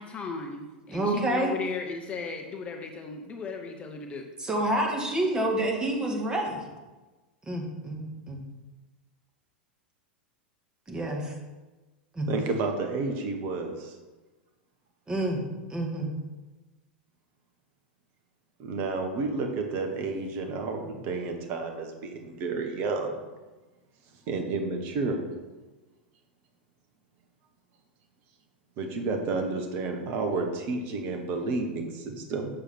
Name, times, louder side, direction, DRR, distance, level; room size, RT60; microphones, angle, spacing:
voice 1, 0.0-4.2, left 4 dB, 25° left, 3 dB, 0.9 m, -36 dB
voice 2, 0.9-1.5 4.4-6.7 7.4-8.0 8.3-8.4 10.9-11.2 12.1-12.3 15.1-15.4 15.7-16.1, right 1 dB, 15° right, 0 dB, 1.9 m, -28 dB
voice 3, 12.3-14.0 18.6-23.2 24.3-25.2 28.8-32.5, right 3 dB, 40° right, 3 dB, 1.3 m, -31 dB
7.5 x 6.8 x 4.5 m, 1.2 s
figure-of-eight pair, 90°, 5 cm